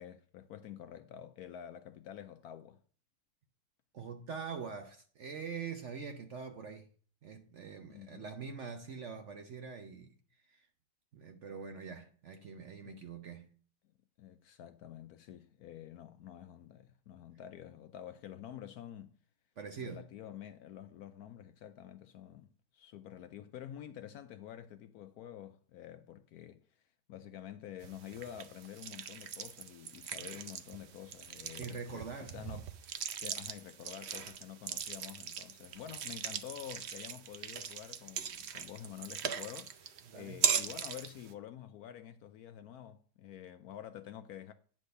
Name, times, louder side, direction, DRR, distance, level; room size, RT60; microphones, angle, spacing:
voice 1, 0.0-2.8 7.9-8.2 12.8-13.0 14.2-19.1 19.8-26.6 27.1-32.9 33.2-44.5, left 10 dB, 70° left, 0.9 m, -48 dB
voice 2, 3.9-6.9 7.2-10.7 11.1-13.5 19.6-20.0 31.6-32.4 40.1-40.4, right 5 dB, 55° right, 0.9 m, -44 dB
sound 1, 27.8-41.3, right 8 dB, 85° right, 0.5 m, -40 dB
9.8 x 3.6 x 6.6 m
omnidirectional pair, 1.9 m